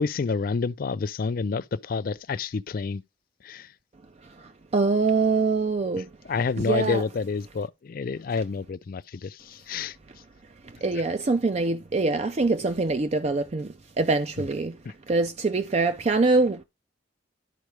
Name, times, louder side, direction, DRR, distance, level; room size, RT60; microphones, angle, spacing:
voice 1, 0.0-3.0 3.4-3.7 6.3-9.9, left 4 dB, 50° left, 0.4 m, -28 dB
voice 2, 4.7-6.0 6.6-7.0 10.8-13.7 14.0-14.7 15.1-16.6, right 3 dB, 35° right, 0.5 m, -24 dB
12.0 x 4.6 x 3.2 m
head